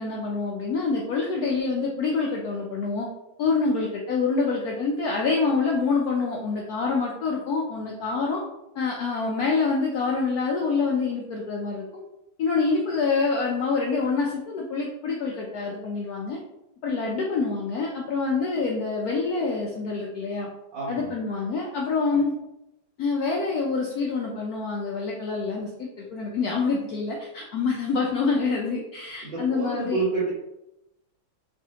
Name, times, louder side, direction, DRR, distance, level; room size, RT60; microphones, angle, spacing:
voice 1, 0.0-3.1 3.4-8.4 8.7-12.0 12.4-16.4 16.8-20.5 20.9-22.3 23.0-30.0, left 4 dB, 85° left, -2 dB, 0.8 m, -26 dB
voice 2, 20.7-21.1 22.0-22.1 29.2-30.3, right 3 dB, 60° right, -9 dB, 1.9 m, -28 dB
3.4 x 3.1 x 2.8 m, 0.89 s
omnidirectional pair, 2.2 m